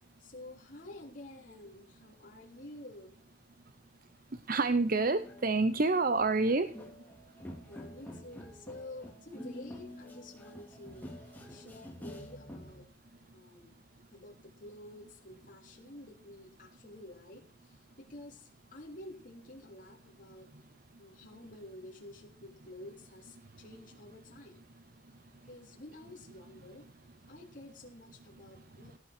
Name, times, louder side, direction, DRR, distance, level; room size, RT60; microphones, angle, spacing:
voice 1, 0.2-3.2 7.7-11.1 11.5-12.8 13.3-13.7 14.1-14.3 14.6-17.7 18.1-20.5 21.0-24.6 25.5-26.9 27.3-29.0, left 1 dB, 45° left, -1 dB, 3.5 m, -50 dB
voice 2, 4.5-6.7, right 3 dB, 50° right, 12 dB, 0.8 m, -27 dB
sound 1, 4.7-12.8, left 1 dB, 10° left, 2.7 m, -48 dB
17.5 x 7.8 x 6.1 m, 0.41 s
head